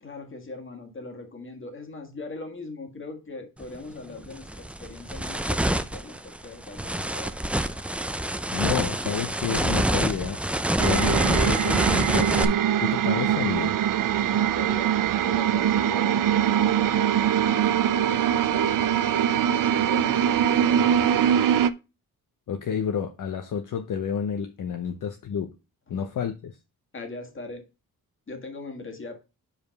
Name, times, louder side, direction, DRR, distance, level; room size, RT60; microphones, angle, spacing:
voice 1, 0.0-8.0 14.1-17.0 17.9-20.3 20.6-21.6 25.9-26.0 26.9-27.7 28.3-29.2, left 3 dB, 35° left, 1.7 m, -41 dB
sound 1, 3.6-3.8 4.2-12.4, right 1 dB, 5° right, 0.4 m, -26 dB
voice 2, 8.5-10.4 10.8-12.4 12.8-13.8 22.5-25.5 25.9-26.6, left 7 dB, 55° left, 0.7 m, -30 dB
sound 2, 10.8-21.7, right 9 dB, 60° right, 0.5 m, -22 dB
5.1 x 4.9 x 5.2 m
cardioid pair, 110°, 37 cm